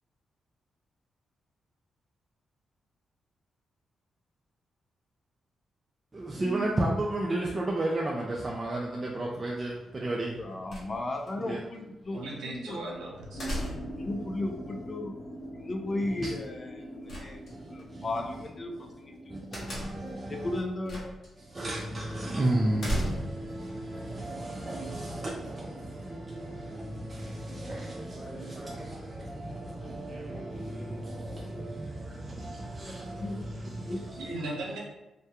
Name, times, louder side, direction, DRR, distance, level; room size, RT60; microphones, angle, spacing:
voice 1, 6.1-10.4 11.4-11.6 13.9-14.1 16.2-16.3 17.5-18.2 19.2-20.6 21.4-34.3, right 1 dB, 35° right, -3 dB, 0.4 m, -33 dB
voice 2, 10.4-12.2 12.4-12.8 14.0-15.1 15.6-17.4 17.7-19.1 20.3-21.2 33.2-33.4 33.9-34.0, left 2 dB, 40° left, 3 dB, 0.4 m, -35 dB
sound 1, 10.7-11.3 13.4-14.1 17.1-17.8 19.5-20.1 20.9-21.3 21.6-21.7 22.8-23.5, equal, 60° left, 1.1 m, -35 dB
voice 3, 12.1-13.4 34.1-34.8, right 2 dB, 90° right, -3 dB, 0.7 m, -37 dB
sound 2, 13.3-19.9, equal, 85° left, 0.6 m, -43 dB
2.2 x 2.2 x 2.8 m, 0.99 s
cardioid pair, 65°, 0 cm